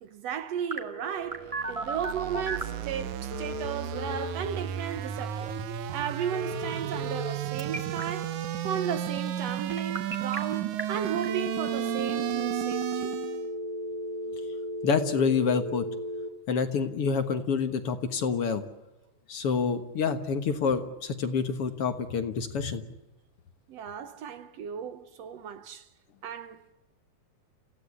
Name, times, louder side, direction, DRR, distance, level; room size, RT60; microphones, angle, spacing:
voice 1, 0.0-5.6 5.9-13.1 23.7-25.9 26.2-26.6, right 8 dB, 65° right, 2.0 m, -35 dB
Telephone, 0.7-2.8 3.3-4.3 6.3-7.3 7.6-8.0 9.7-10.4 10.8-10.9 11.2-16.3, equal, 15° right, 1.8 m, -35 dB
sound 1, 1.3-13.5, right 11 dB, 85° right, 2.5 m, -33 dB
voice 2, 14.8-15.9 16.5-18.6 19.3-22.8, left 5 dB, 55° left, 2.2 m, -27 dB
29.5 x 15.5 x 9.9 m
omnidirectional pair, 3.4 m